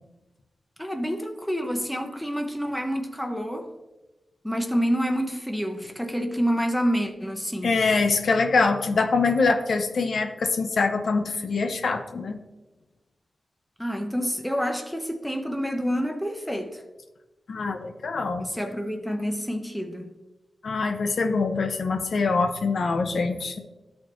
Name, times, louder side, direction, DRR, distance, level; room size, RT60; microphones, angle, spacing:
voice 1, 0.8-3.7 4.4-7.8 13.8-16.8 18.4-20.2, equal, ahead, 4 dB, 0.6 m, -28 dB
voice 2, 7.6-12.4 17.5-18.5 20.6-23.6, left 4 dB, 70° left, 6 dB, 0.7 m, -24 dB
13.0 x 4.3 x 3.0 m, 1.1 s
wide cardioid pair, 160°, 0 cm